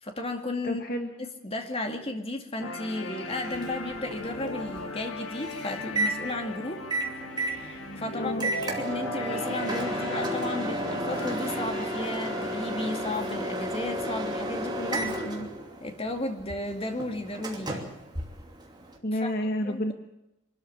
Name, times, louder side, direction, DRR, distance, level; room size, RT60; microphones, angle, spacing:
voice 1, 0.0-0.8 1.2-6.8 7.5-8.3 8.6-15.1 15.8-17.9 19.2-19.3 19.7-19.9, left 2 dB, 30° left, 4 dB, 2.3 m, -34 dB
voice 2, 0.6-1.1 8.1-8.5 14.8-15.5 19.0-19.9, left 1 dB, 45° left, 5 dB, 1.6 m, -31 dB
sound 1, 2.6-14.6, left 2 dB, 85° left, 2.3 m, -38 dB
Microwave oven, 3.3-19.0, right 1 dB, 20° right, 2.8 m, -33 dB
24.5 x 13.0 x 8.7 m, 0.91 s
head